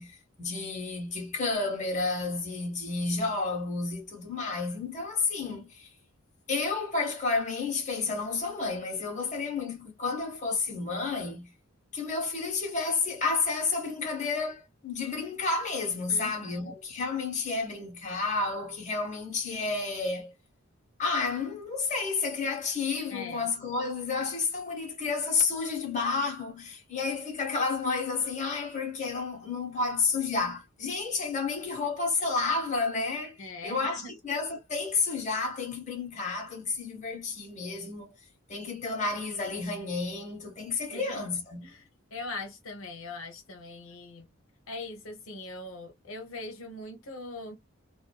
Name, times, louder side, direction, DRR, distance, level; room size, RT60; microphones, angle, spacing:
voice 1, 0.0-5.9 6.5-11.5 11.9-20.3 21.0-33.4 33.6-38.1 38.5-41.7, left 4 dB, 35° left, 1.1 m, -31 dB
voice 2, 16.1-16.7 23.1-23.5 33.4-34.1 40.9-41.2 41.6-44.3 44.7-47.6, left 2 dB, 80° left, 0.8 m, -41 dB
2.5 x 2.2 x 2.2 m
head